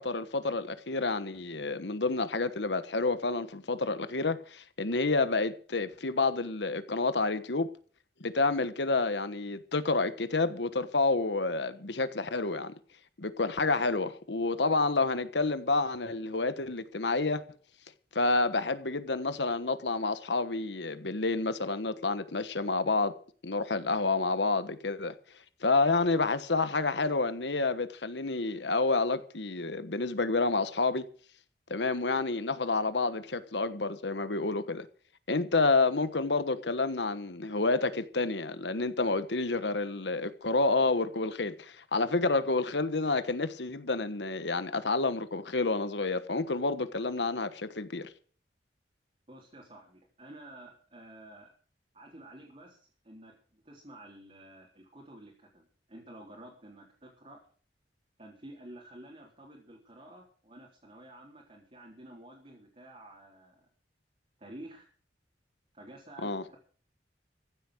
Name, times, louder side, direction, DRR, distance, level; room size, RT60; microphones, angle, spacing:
voice 1, 0.0-7.7 8.2-12.7 13.2-17.4 18.1-23.2 23.4-25.1 25.6-31.1 31.7-34.9 35.3-48.1 66.2-66.4, left 3 dB, 75° left, 1.3 m, -29 dB
voice 2, 49.3-51.5 51.9-57.4 58.2-63.7 64.4-64.9 65.7-66.6, right 1 dB, 35° right, 3.8 m, -51 dB
15.0 x 8.4 x 7.9 m
head